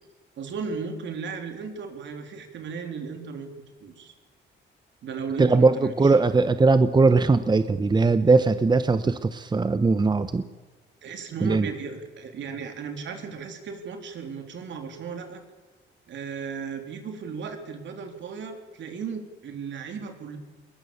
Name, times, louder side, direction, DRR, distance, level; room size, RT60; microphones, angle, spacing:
voice 1, 0.4-3.5 3.8-4.1 5.0-6.2 11.0-15.4 16.1-20.4, right 5 dB, 65° right, 5 dB, 3.7 m, -35 dB
voice 2, 5.4-10.4 11.4-11.7, right 3 dB, 20° right, 12 dB, 1.0 m, -20 dB
21.5 x 19.0 x 7.1 m, 1.3 s
cardioid pair, 90°, 20 cm